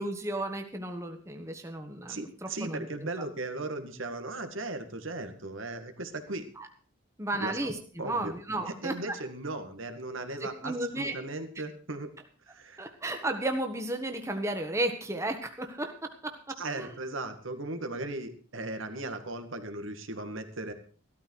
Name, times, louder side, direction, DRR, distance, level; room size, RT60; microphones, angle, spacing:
voice 1, 0.0-2.9 6.6-6.7 7.2-9.1 10.4-11.1 12.8-15.9 16.2-16.3 16.8-16.9, right 1 dB, 15° right, 5 dB, 1.4 m, -33 dB
voice 2, 2.1-6.4 7.3-7.7 8.0-8.3 8.7-12.1 12.5-12.8 16.6-20.7, right 2 dB, 80° right, 7 dB, 2.0 m, -37 dB
14.5 x 13.0 x 4.7 m, 0.42 s
head